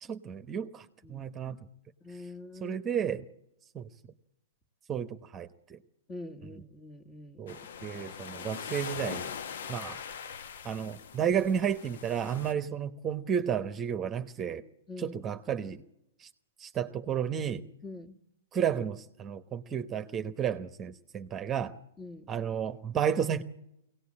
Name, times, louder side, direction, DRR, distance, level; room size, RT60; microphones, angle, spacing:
voice 1, 0.0-1.6 2.6-3.2 3.7-3.9 4.9-5.8 7.4-9.3 9.7-10.0 10.6-14.6 15.0-15.8 16.2-16.3 16.6-17.6 18.5-21.7 22.3-23.4, right 8 dB, 25° right, 10 dB, 1.1 m, -32 dB
voice 2, 2.0-3.0 6.1-7.5 14.9-15.2 17.8-18.2 22.0-22.3, left 2 dB, 25° left, 9 dB, 2.0 m, -45 dB
sound 1, 7.5-12.5, left 7 dB, 70° left, 1.0 m, -41 dB
22.5 x 18.0 x 8.7 m, 0.82 s
hypercardioid pair, 125°, 0 cm